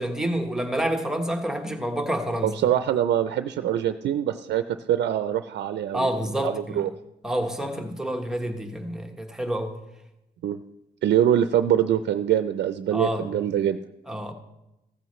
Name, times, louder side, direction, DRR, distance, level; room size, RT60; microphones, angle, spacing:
voice 1, 0.0-2.6 5.9-6.9 7.2-9.8 12.9-13.3 14.1-14.3, equal, 5° right, 1.2 m, -28 dB
voice 2, 2.4-4.6 4.9-6.1 6.4-6.9 10.4-10.6 11.0-13.8, right 10 dB, 90° right, 0.5 m, -24 dB
15.5 x 14.0 x 3.1 m
wide cardioid pair, 140°, 17 cm